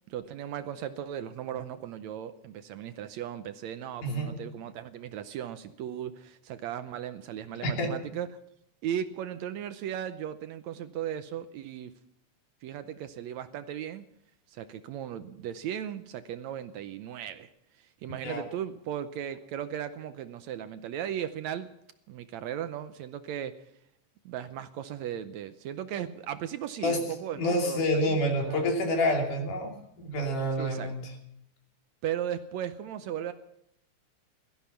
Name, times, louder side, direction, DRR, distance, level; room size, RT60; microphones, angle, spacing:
voice 1, 0.1-8.3 8.8-11.9 12.6-14.0 14.5-17.5 17.8-21.7 22.1-23.5 24.3-28.2 28.5-28.6 30.6-31.0 32.0-33.3, right 10 dB, 75° right, 11 dB, 1.9 m, -36 dB
voice 2, 4.0-4.4 7.6-7.9 18.2-18.4 26.8-27.0 27.3-31.1, left 1 dB, 85° left, 1 dB, 4.5 m, -28 dB
17.0 x 14.0 x 5.8 m, 0.78 s
omnidirectional pair, 3.5 m